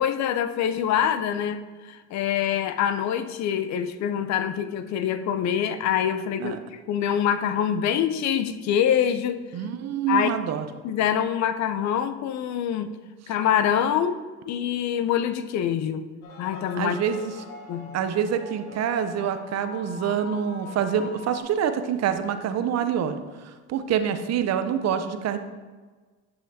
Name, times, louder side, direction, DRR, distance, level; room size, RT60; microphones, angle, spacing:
voice 1, 0.0-6.6 6.9-9.4 10.1-10.3 10.8-12.9 13.3-14.2 14.5-16.0 16.4-17.0 17.7-18.0, left 9 dB, 50° left, 11 dB, 0.6 m, -25 dB
voice 2, 9.5-10.7 16.8-17.4 17.9-25.4, right 8 dB, 45° right, 9 dB, 0.7 m, -26 dB
sound 1, 16.2-21.4, left 3 dB, 75° left, 2.0 m, -42 dB
10.5 x 5.7 x 2.8 m, 1.4 s
hypercardioid pair, 80°, 35 cm